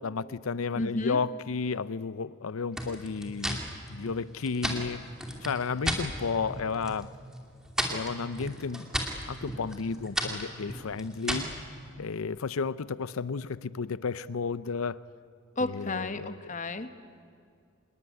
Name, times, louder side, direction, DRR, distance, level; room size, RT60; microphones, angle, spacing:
voice 1, 0.0-3.6 3.9-5.0 5.4-7.1 7.9-8.9 9.3-11.5 12.0-15.0 15.6-16.5, left 5 dB, 90° left, 17 dB, 0.6 m, -32 dB
voice 2, 0.8-1.2 15.6-16.9, left 2 dB, 35° left, 10 dB, 1.2 m, -32 dB
sound 1, 2.7-6.1 6.4-7.0 7.3-11.6, equal, 5° right, 2.5 m, -34 dB
27.0 x 19.5 x 9.7 m, 2.4 s
head